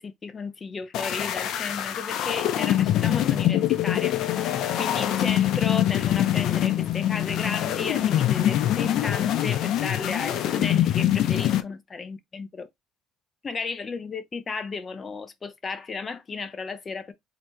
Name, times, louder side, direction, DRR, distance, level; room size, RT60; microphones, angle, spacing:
voice 1, 0.0-12.7 13.4-17.1, left 4 dB, 25° left, 0.7 m, -34 dB
sound 1, 0.9-11.6, left 12 dB, 60° left, 0.7 m, -24 dB
4.0 x 2.9 x 3.6 m
cardioid pair, 120°, 0 cm